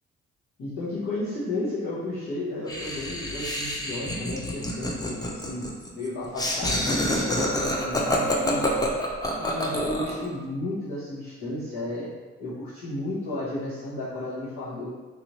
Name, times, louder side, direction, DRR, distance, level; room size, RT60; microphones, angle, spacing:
voice 1, 0.6-8.8 9.4-12.1 12.4-14.9, left 1 dB, 75° left, -11 dB, 1.1 m, -33 dB
Laughter, 2.7-10.3, left 1 dB, 15° left, 0.7 m, -27 dB
3.3 x 2.6 x 3.0 m, 1.3 s
supercardioid pair, 50°, 29 cm